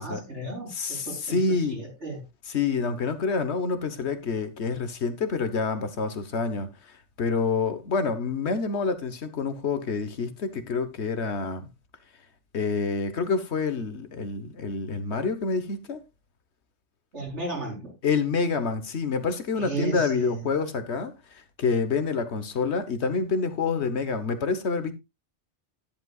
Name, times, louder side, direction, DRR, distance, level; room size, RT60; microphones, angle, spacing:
voice 1, 0.0-2.2 17.1-17.9 19.5-20.4, right 2 dB, 70° right, 4.4 m, -35 dB
voice 2, 0.7-1.8 2.5-6.7 7.2-11.7 12.5-16.0 18.0-24.9, left 4 dB, 65° left, 1.4 m, -27 dB
11.0 x 10.5 x 2.4 m
omnidirectional pair, 1.2 m